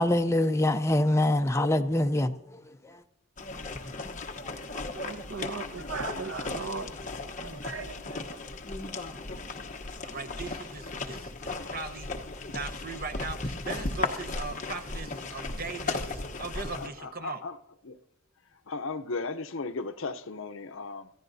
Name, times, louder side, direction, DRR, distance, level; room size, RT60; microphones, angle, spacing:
voice 1, 0.0-3.0, left 1 dB, 15° left, 0.5 m, -25 dB
sound 1, 3.4-16.9, left 3 dB, 35° left, 1.0 m, -36 dB
voice 2, 4.7-6.9 7.4-8.4, right 4 dB, 65° right, 1.1 m, -38 dB
voice 3, 10.0-12.1 12.4-17.4, right 4 dB, 45° right, 0.9 m, -39 dB
voice 4, 16.8-17.6 17.8-18.0 18.5-21.1, left 3 dB, 65° left, 0.7 m, -36 dB
27.5 x 15.0 x 2.7 m
head